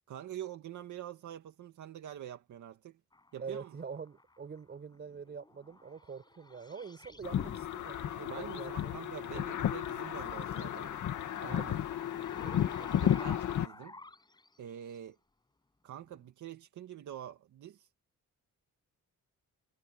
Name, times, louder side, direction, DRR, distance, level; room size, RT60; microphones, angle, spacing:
voice 1, 0.0-3.0 3.3-3.8 8.2-10.9 11.4-11.8 13.0-14.0 14.6-15.2 15.8-17.9, right 10 dB, 75° right, 2.0 m, -46 dB
sound 1, 3.1-4.6 4.9-8.3 8.9-14.8 16.1-16.2, left 2 dB, 15° left, 7.9 m, -51 dB
voice 2, 3.4-8.9 9.3-9.5 11.6-11.7 12.4-13.1, right 6 dB, 35° right, 4.6 m, -45 dB
sound 2, 7.2-13.7, left 10 dB, 85° left, 2.5 m, -33 dB
wide cardioid pair, 170°, 30 cm